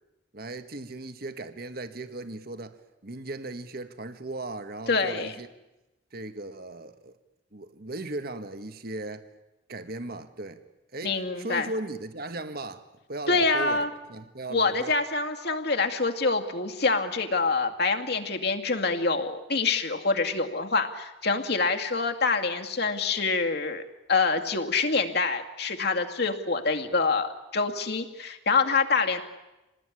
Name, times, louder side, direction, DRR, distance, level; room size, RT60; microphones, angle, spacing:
voice 1, 0.3-5.5 6.1-7.2 7.5-9.3 9.7-10.6 10.9-15.0, right 2 dB, 55° right, 1.6 m, -37 dB
voice 2, 4.9-5.3 11.0-11.7 13.3-13.9 14.5-23.8 24.1-29.2, left 4 dB, 60° left, 2.3 m, -26 dB
27.0 x 19.5 x 9.9 m
head